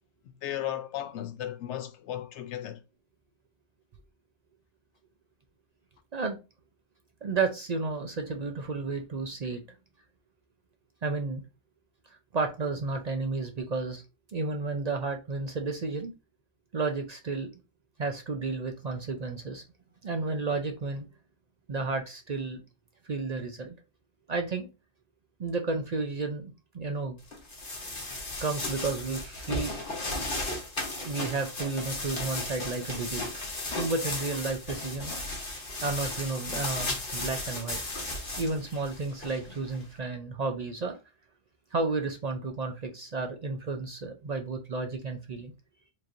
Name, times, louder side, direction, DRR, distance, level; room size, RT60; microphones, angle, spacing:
voice 1, 0.2-2.8, left 11 dB, 65° left, 0.9 m, -35 dB
voice 2, 7.2-9.6 11.0-11.4 12.1-14.0 14.3-16.1 16.7-17.5 18.0-19.6 20.0-21.1 21.7-22.6 23.1-23.7 24.3-24.7 25.4-27.2 28.4-29.7 31.0-33.2 33.8-35.1 35.8-37.8 38.4-41.0 41.7-45.5, right 3 dB, 55° right, 0.4 m, -32 dB
sound 1, 27.3-39.8, left 2 dB, 45° left, 1.4 m, -35 dB
4.6 x 3.0 x 2.6 m
omnidirectional pair, 1.3 m